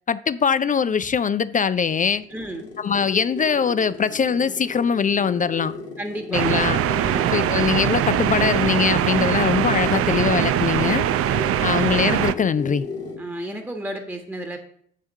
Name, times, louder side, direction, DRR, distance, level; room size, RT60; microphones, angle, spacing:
voice 1, 0.1-2.2 2.8-5.7 6.3-6.8 7.3-11.0 11.6-12.8, left 6 dB, 25° left, 0.5 m, -22 dB
sound 1, 1.6-13.3, left 4 dB, 70° left, 2.4 m, -35 dB
voice 2, 2.3-2.7 6.0-6.7 7.0-7.3 13.2-14.6, right 1 dB, 5° right, 1.3 m, -32 dB
sound 2, 6.3-12.3, right 11 dB, 50° right, 0.5 m, -22 dB
9.9 x 3.6 x 6.5 m
hypercardioid pair, 50°, 31 cm